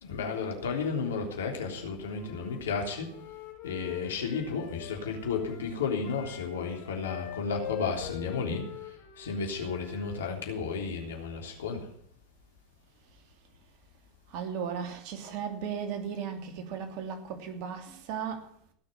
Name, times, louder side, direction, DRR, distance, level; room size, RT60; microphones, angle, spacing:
voice 1, 0.0-3.1 3.6-11.9, left 5 dB, 80° left, 3.4 m, -33 dB
Wind instrument woodwind instrument, 2.1-10.1, left 10 dB, 55° left, 5.0 m, -44 dB
voice 2, 14.3-18.5, right 7 dB, 60° right, 3.0 m, -36 dB
18.0 x 6.8 x 9.3 m
hypercardioid pair, 90°, 0 cm